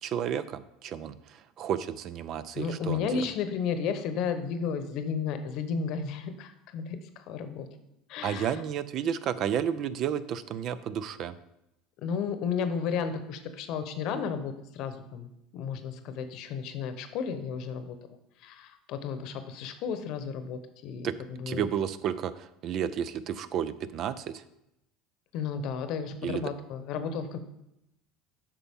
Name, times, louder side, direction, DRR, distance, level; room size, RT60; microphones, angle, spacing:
voice 1, 0.0-3.2 8.2-11.3 21.0-21.1 21.5-24.4 26.2-26.5, right 9 dB, 50° right, 15 dB, 0.4 m, -32 dB
voice 2, 2.5-7.7 8.1-8.6 12.0-21.6 25.3-27.4, left 6 dB, 60° left, 9 dB, 0.9 m, -33 dB
8.4 x 5.8 x 3.6 m, 0.84 s
supercardioid pair, 95°, 0 cm